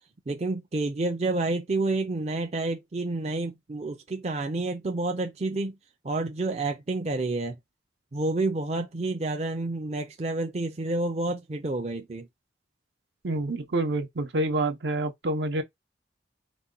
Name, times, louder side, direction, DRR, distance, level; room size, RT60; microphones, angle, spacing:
voice 1, 0.3-5.8 6.0-7.6 8.1-12.3, right 2 dB, 35° right, 0.5 m, -29 dB
voice 2, 13.2-15.6, right 2 dB, 70° right, 0.7 m, -27 dB
4.1 x 2.2 x 3.7 m
head